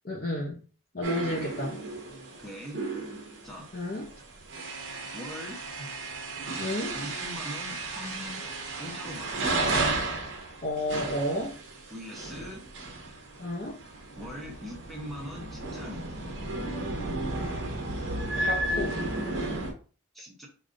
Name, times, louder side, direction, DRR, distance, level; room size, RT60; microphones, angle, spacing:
voice 1, 0.0-0.6 0.9-1.8 3.7-4.1 6.6-6.9 10.6-11.5 13.4-13.8 18.4-19.0, left 1 dB, 45° left, -2 dB, 0.7 m, -31 dB
sound 1, 1.0-19.7, right 2 dB, 55° right, 0.9 m, -34 dB
voice 2, 2.4-2.8 3.4-3.7 5.1-5.6 6.9-8.5 8.8-9.6 11.9-12.6 14.2-16.1 17.7-17.8 20.1-20.5, left 1 dB, ahead, -1 dB, 0.8 m, -41 dB
4.9 x 2.6 x 2.5 m, 0.39 s
head